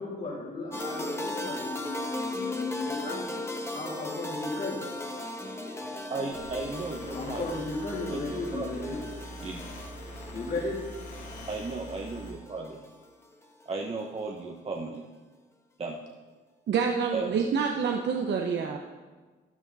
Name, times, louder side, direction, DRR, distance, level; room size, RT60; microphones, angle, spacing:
voice 1, 0.0-4.8 7.1-9.0 10.3-10.8, left 3 dB, 50° left, -6 dB, 3.1 m, -35 dB
sound 1, 0.7-13.6, left 1 dB, 15° left, 1.3 m, -38 dB
voice 2, 6.1-7.4 8.1-9.0 9.4-9.6 11.5-12.8 13.6-15.0 15.8-16.0 17.1-17.4, right 3 dB, 30° right, 0 dB, 1.1 m, -35 dB
sound 2, 6.3-12.3, equal, 85° left, 2.6 m, -44 dB
voice 3, 16.7-18.8, right 6 dB, 60° right, 2 dB, 1.0 m, -27 dB
12.5 x 10.5 x 4.1 m, 1.3 s
cardioid pair, 90°, 20 cm